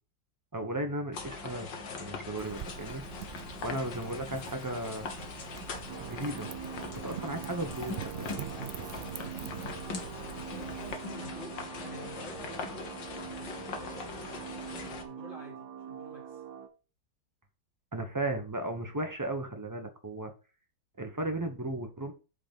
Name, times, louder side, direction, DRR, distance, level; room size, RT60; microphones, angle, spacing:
voice 1, 0.5-1.7 2.0-3.0 3.3-5.1 6.0-6.5 7.0-8.5 17.9-20.3 21.0-22.1, right 1 dB, 15° right, 5 dB, 1.0 m, -35 dB
sound 1, 1.1-15.0, left 4 dB, 70° left, 2.1 m, -41 dB
Wind / Fire, 2.4-11.0, right 9 dB, 90° right, 0.5 m, -44 dB
sound 2, 5.9-16.7, right 9 dB, 60° right, 1.6 m, -44 dB
voice 2, 10.5-12.9 13.3-16.4, left 1 dB, 25° left, -3 dB, 3.4 m, -49 dB
8.5 x 5.0 x 5.5 m, 0.33 s
omnidirectional pair, 2.0 m